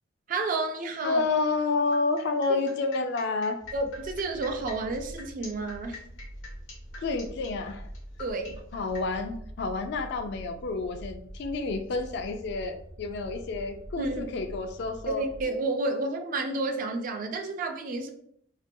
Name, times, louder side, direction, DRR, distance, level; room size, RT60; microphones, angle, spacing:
voice 1, 0.3-1.2 2.5-2.6 3.7-6.0 8.2-8.6 14.0-14.4 15.1-18.1, right 3 dB, 45° right, 5 dB, 0.3 m, -31 dB
voice 2, 1.0-3.6 7.0-7.9 8.7-15.2, left 3 dB, 60° left, 6 dB, 0.3 m, -29 dB
sound 1, 1.9-9.1, left 3 dB, 90° left, 0.8 m, -45 dB
sound 2, 3.6-15.5, equal, 70° right, 0.7 m, -45 dB
2.4 x 2.2 x 2.6 m, 0.67 s
head